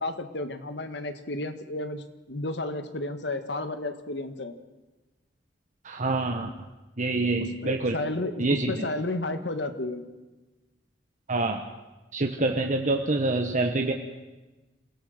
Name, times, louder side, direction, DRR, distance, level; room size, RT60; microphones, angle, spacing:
voice 1, 0.0-4.5 7.6-10.1, left 2 dB, 70° left, 9 dB, 1.6 m, -32 dB
voice 2, 5.8-6.5 7.0-8.0 8.4-8.9 11.3-11.7 12.1-13.9, right 2 dB, 45° right, 4 dB, 1.2 m, -26 dB
27.5 x 17.0 x 6.6 m, 1.1 s
head